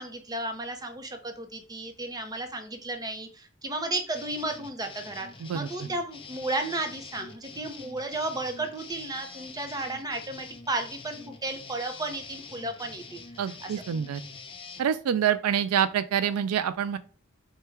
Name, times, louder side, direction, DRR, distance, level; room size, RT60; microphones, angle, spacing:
voice 1, 0.0-5.3 5.5-13.2 13.6-13.7, right 2 dB, 20° right, 6 dB, 0.6 m, -33 dB
sound 1, 4.1-14.8, left 4 dB, 25° left, 0.5 m, -45 dB
voice 2, 13.4-14.2 14.8-17.0, right 8 dB, 85° right, 13 dB, 0.4 m, -26 dB
4.8 x 2.2 x 4.5 m, 0.39 s
head